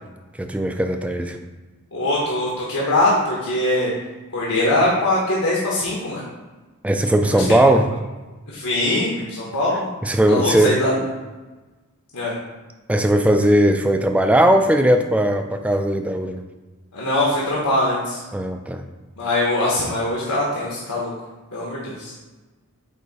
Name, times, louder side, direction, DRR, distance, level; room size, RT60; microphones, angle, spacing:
voice 1, 0.4-1.4 6.8-7.9 10.0-10.8 12.9-16.5 18.3-18.9, right 1 dB, 5° right, 5 dB, 0.3 m, -18 dB
voice 2, 1.9-3.9 4.3-6.2 7.3-7.4 8.5-9.9 10.3-11.0 12.1-12.3 16.9-18.2 19.2-21.1 21.5-22.1, left 1 dB, 90° left, -5 dB, 1.3 m, -22 dB
8.1 x 2.8 x 4.2 m, 1.2 s
head